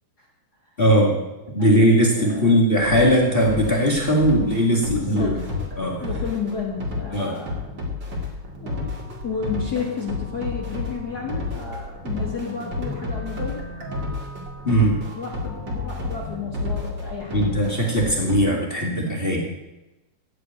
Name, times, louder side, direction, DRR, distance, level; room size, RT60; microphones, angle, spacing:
voice 1, 0.8-1.1 1.5-5.3 5.8-6.0 7.1-7.3 14.6-15.0 17.3-19.4, equal, 25° left, -1 dB, 1.4 m, -19 dB
voice 2, 1.6-2.6 4.8-5.4 6.0-7.6 8.6-8.9 9.2-13.7 15.1-17.6, left 5 dB, 45° left, -1 dB, 1.4 m, -32 dB
sound 1, 2.8-18.4, left 2 dB, 35° right, 2.6 m, -31 dB
15.0 x 5.3 x 9.3 m, 1.0 s
omnidirectional pair, 4.1 m